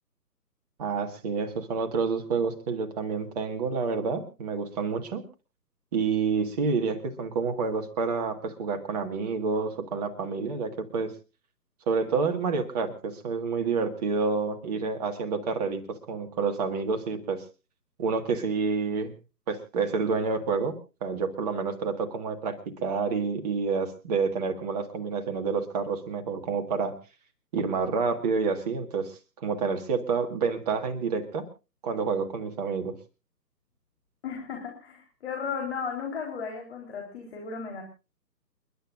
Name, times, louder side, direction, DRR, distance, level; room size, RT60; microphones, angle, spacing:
voice 1, 0.8-5.2 5.9-11.1 11.9-17.4 18.0-19.1 19.5-20.7 21.0-26.9 27.5-31.4 31.8-32.9, right 4 dB, 25° right, 5 dB, 1.8 m, -28 dB
voice 2, 34.2-37.8, left 6 dB, 40° left, 1 dB, 4.0 m, -35 dB
29.5 x 11.5 x 2.5 m, 0.31 s
figure-of-eight pair, 150°, 50 cm